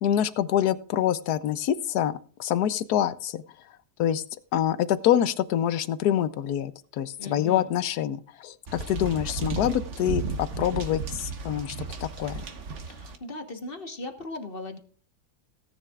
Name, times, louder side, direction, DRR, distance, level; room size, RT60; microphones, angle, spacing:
voice 1, 0.0-3.4 4.0-4.2 4.5-11.8 12.0-12.4, left 11 dB, 75° left, 14 dB, 1.2 m, -26 dB
voice 2, 7.2-7.7 12.9-14.8, left 2 dB, 40° left, 6 dB, 1.3 m, -38 dB
sound 1, 8.7-13.2, right 4 dB, 50° right, 1.4 m, -34 dB
17.5 x 9.8 x 2.4 m, 0.42 s
omnidirectional pair, 1.7 m